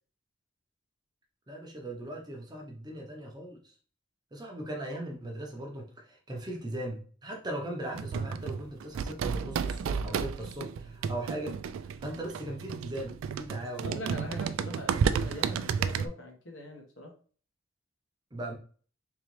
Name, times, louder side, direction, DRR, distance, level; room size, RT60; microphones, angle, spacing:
voice 1, 1.5-3.6 4.3-11.6 12.0-14.0 18.3-18.5, right 1 dB, 20° right, 0.7 m, -39 dB
sound 1, 7.9-16.1, right 6 dB, 80° right, 0.3 m, -32 dB
voice 2, 13.8-17.1, left 1 dB, 65° left, 1.2 m, -42 dB
3.8 x 3.1 x 3.1 m
head